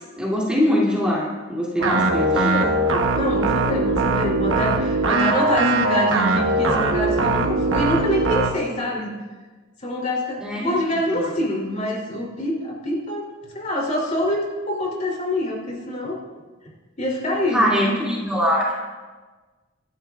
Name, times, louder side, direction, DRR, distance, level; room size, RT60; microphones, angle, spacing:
voice 1, 0.2-2.5 10.4-10.7 11.0-11.3 17.5-18.7, equal, 5° right, -6 dB, 2.8 m, -22 dB
voice 2, 1.8-2.7 3.1-9.1 9.8-13.3 13.5-16.2 17.0-17.7, left 1 dB, 40° left, -2 dB, 3.2 m, -25 dB
sound 1, 1.8-8.5, right 2 dB, 90° right, 1.1 m, -21 dB
25.0 x 12.0 x 2.4 m, 1.3 s
head